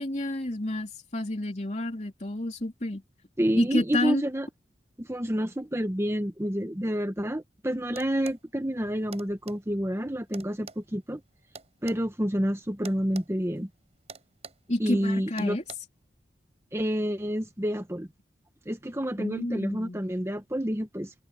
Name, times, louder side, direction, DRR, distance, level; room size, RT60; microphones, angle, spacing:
voice 1, 0.0-3.0 3.6-4.2 14.7-15.6 19.2-20.0, left 1 dB, 40° left, 3.2 m, -29 dB
voice 2, 3.4-4.5 5.0-11.2 11.8-13.7 14.8-15.6 16.7-18.1 18.7-21.1, equal, 15° right, 1.2 m, -29 dB
sound 1, 7.9-8.4 9.1-9.6 10.3-12.0 12.8-13.3 13.6-13.7 14.1-14.7 15.4-15.7, right 5 dB, 35° right, 7.7 m, -45 dB
head